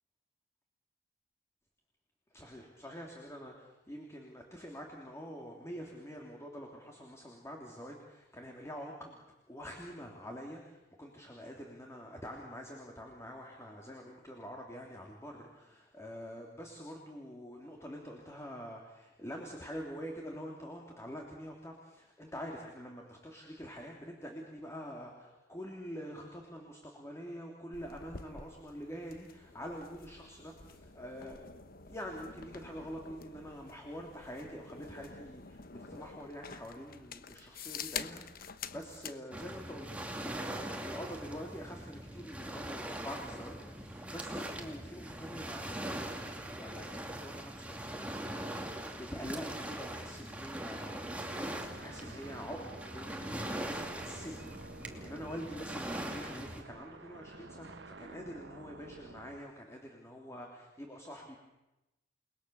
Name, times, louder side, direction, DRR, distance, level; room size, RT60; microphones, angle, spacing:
voice 1, 2.3-9.2 9.5-39.9 40.2-51.1 51.8-61.4, equal, 15° left, 1 dB, 3.3 m, -46 dB
sound 1, 27.7-39.2, left 6 dB, 50° left, 1.1 m, -47 dB
Waves surf, 39.3-56.6, right 1 dB, 10° right, 2.6 m, -41 dB
sound 2, 51.4-59.4, right 3 dB, 70° right, 1.2 m, -51 dB
29.5 x 21.0 x 7.1 m, 0.98 s
head